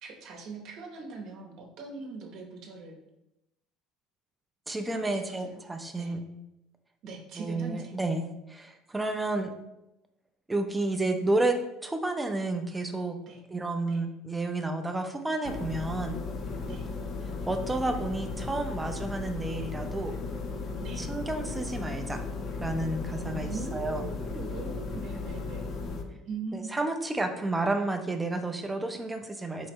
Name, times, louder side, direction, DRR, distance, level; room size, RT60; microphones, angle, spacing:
voice 1, 0.0-3.0 4.9-5.6 6.0-6.1 7.0-7.9 13.2-13.4 13.9-14.0 16.6-16.9 20.8-21.1 23.2-25.7 26.3-26.7, right 4 dB, 60° right, 1 dB, 0.8 m, -41 dB
voice 2, 4.7-6.2 7.4-9.5 10.5-11.6 11.8-13.2 13.5-16.2 17.5-20.2 21.0-22.2 22.6-24.0 26.5-29.7, right 2 dB, 10° right, 6 dB, 0.4 m, -31 dB
sound 1, 15.4-26.0, left 4 dB, 40° left, 0.5 m, -36 dB
4.7 x 2.1 x 4.3 m, 0.90 s
cardioid pair, 125°, 0 cm